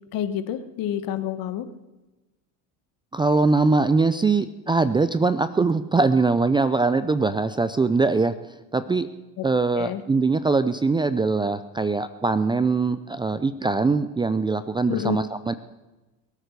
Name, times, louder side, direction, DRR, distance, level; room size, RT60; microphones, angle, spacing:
voice 1, 0.1-1.7 9.4-9.5 9.7-10.0 14.9-15.2, left 10 dB, 55° left, 11 dB, 1.5 m, -28 dB
voice 2, 3.1-8.3 8.7-9.1 9.4-15.5, right 3 dB, 10° right, 13 dB, 0.5 m, -22 dB
22.0 x 8.2 x 6.7 m, 1.1 s
supercardioid pair, 105°, 41 cm